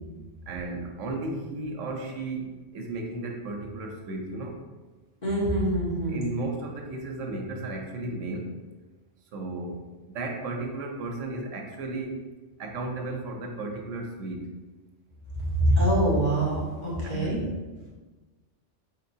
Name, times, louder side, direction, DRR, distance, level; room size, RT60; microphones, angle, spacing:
voice 1, 0.5-4.6 6.1-8.6 9.3-9.8 10.1-12.2 12.6-14.6 17.0-17.9, right 2 dB, 85° right, 2 dB, 1.0 m, -34 dB
voice 2, 5.2-6.2 15.5-17.4, right 1 dB, 40° left, -7 dB, 1.3 m, -24 dB
4.3 x 3.7 x 2.7 m, 1.3 s
omnidirectional pair, 1.2 m